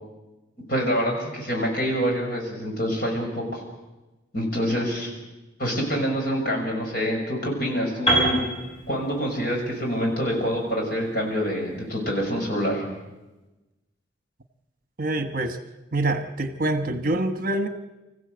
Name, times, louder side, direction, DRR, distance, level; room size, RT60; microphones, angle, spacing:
voice 1, 0.7-3.6 4.3-5.1 5.6-8.4 8.9-12.8, equal, 50° left, 0 dB, 6.5 m, -26 dB
Piano, 8.1-12.0, right 2 dB, 30° left, 7.4 m, -27 dB
voice 2, 15.0-15.6 15.9-17.7, right 2 dB, 50° right, 9 dB, 1.2 m, -25 dB
25.0 x 15.0 x 8.0 m, 1.1 s
head